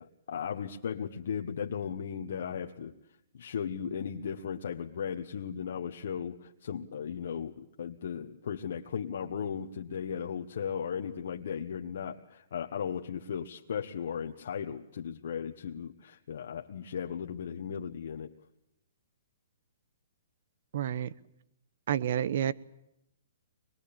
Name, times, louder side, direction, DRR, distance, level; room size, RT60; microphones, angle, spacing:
voice 1, 0.0-2.9 3.3-18.3, left 7 dB, 70° left, 2 dB, 1.3 m, -36 dB
voice 2, 20.7-21.1 21.9-22.5, right 10 dB, 60° right, 18 dB, 0.9 m, -29 dB
24.0 x 22.0 x 8.8 m, 0.81 s
hypercardioid pair, 145°, 0 cm